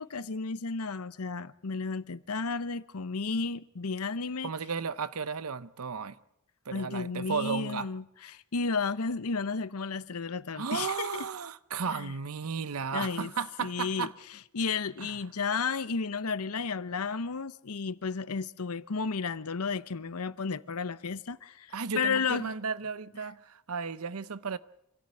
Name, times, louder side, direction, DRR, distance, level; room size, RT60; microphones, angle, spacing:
voice 1, 0.0-4.5 6.7-11.3 11.9-12.1 12.9-13.3 13.6-14.1 14.5-22.5, left 4 dB, 85° left, 0.8 m, -33 dB
voice 2, 4.4-6.2 6.7-7.9 10.5-14.1 15.0-15.2 21.7-24.6, right 5 dB, 80° right, 0.8 m, -34 dB
26.0 x 14.0 x 9.8 m
head